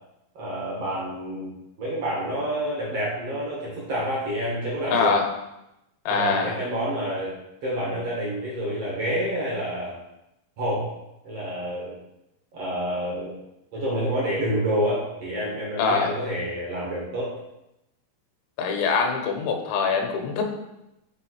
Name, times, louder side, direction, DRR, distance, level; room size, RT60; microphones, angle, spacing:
voice 1, 0.3-5.1 6.2-7.3 7.6-9.9 10.6-10.9 11.2-12.0 12.5-13.3 13.7-17.3, equal, 60° right, -5 dB, 1.6 m, -28 dB
voice 2, 4.9-5.3 6.1-6.5 15.8-16.1 18.6-20.6, left 5 dB, 85° left, 3 dB, 3.1 m, -23 dB
7.8 x 4.0 x 4.6 m, 0.89 s
omnidirectional pair, 5.1 m